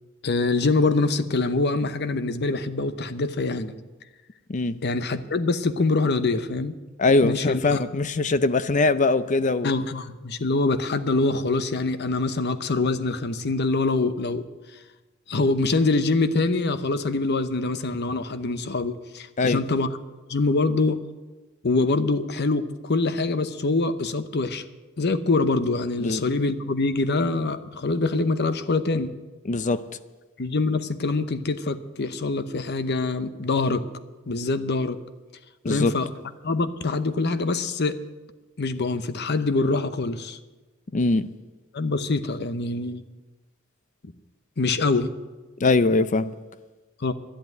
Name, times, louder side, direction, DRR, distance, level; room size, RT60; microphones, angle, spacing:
voice 1, 0.2-3.7 4.8-6.8 7.2-7.8 9.6-14.5 15.3-19.9 20.3-21.0 21.6-24.6 25.0-29.1 30.4-33.8 34.3-35.0 35.7-36.1 36.4-38.0 38.6-40.4 41.7-43.0 44.6-45.1 47.0-47.1, left 3 dB, 55° left, 0.8 m, -24 dB
voice 2, 7.0-9.7 19.4-19.6 26.0-26.2 29.4-29.8 35.6-35.9 40.9-41.3 45.6-46.3, left 3 dB, 35° left, 0.5 m, -22 dB
11.5 x 11.0 x 9.0 m
head